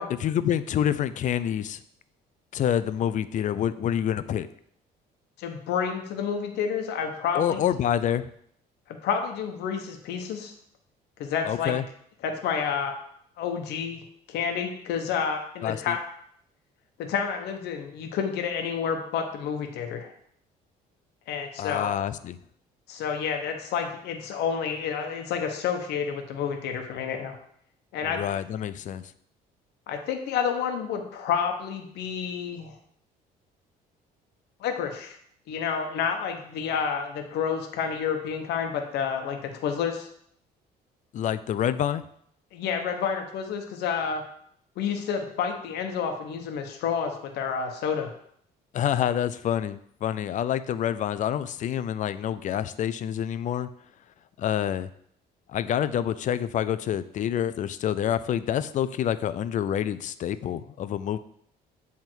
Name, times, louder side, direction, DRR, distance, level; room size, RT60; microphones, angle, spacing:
voice 1, 0.2-1.8 2.5-4.5 7.3-8.3 11.4-11.8 15.6-16.0 21.6-22.4 28.0-29.1 41.1-42.0 48.7-53.7 54.4-54.9 55.5-61.2, left 10 dB, 50° left, 14 dB, 0.4 m, -27 dB
voice 2, 5.4-7.6 8.9-10.5 11.2-11.7 12.2-12.9 13.4-14.0 14.3-16.0 17.0-20.1 21.3-22.0 22.9-27.4 27.9-28.2 29.9-32.7 34.6-35.2 35.5-40.1 42.5-44.2 44.8-48.1, left 7 dB, 80° left, 4 dB, 1.0 m, -29 dB
7.8 x 3.6 x 4.5 m, 0.67 s
cardioid pair, 110°, 17 cm